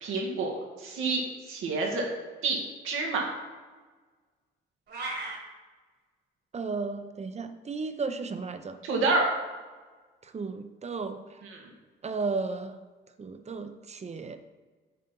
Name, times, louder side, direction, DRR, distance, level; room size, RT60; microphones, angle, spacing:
voice 1, 0.0-0.5 0.8-1.2 1.5-2.0 2.4-2.6 2.8-3.2 8.8-9.3 11.4-11.6, right 3 dB, 90° right, 0 dB, 1.8 m, -27 dB
sound 1, 4.9-5.4, right 2 dB, 60° right, 2.2 m, -35 dB
voice 2, 6.5-8.8 10.2-11.4 12.0-12.8 13.2-14.4, right 4 dB, 35° right, 9 dB, 0.7 m, -34 dB
9.4 x 4.2 x 5.4 m, 1.3 s
cardioid pair, 90°, 20 cm